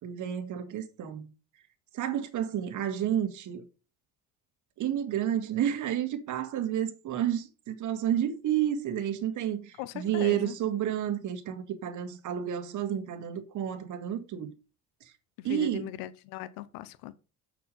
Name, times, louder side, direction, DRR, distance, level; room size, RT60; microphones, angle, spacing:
voice 1, 0.0-1.3 1.9-3.7 4.8-14.5 15.4-15.9, right 10 dB, 60° right, 1.8 m, -30 dB
voice 2, 9.8-10.5 15.5-17.1, left 15 dB, 85° left, 0.8 m, -39 dB
6.7 x 6.6 x 5.5 m
supercardioid pair, 85°, 34 cm